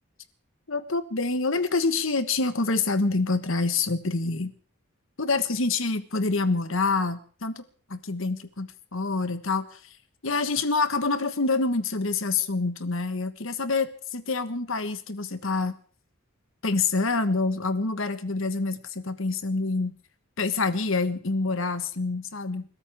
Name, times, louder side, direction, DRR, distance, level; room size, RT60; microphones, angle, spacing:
voice 1, 0.7-4.5 5.2-7.6 7.9-9.9 10.2-15.7 16.6-20.0 20.4-22.6, left 3 dB, 65° left, 11 dB, 1.4 m, -26 dB
29.5 x 13.5 x 3.6 m, 0.42 s
head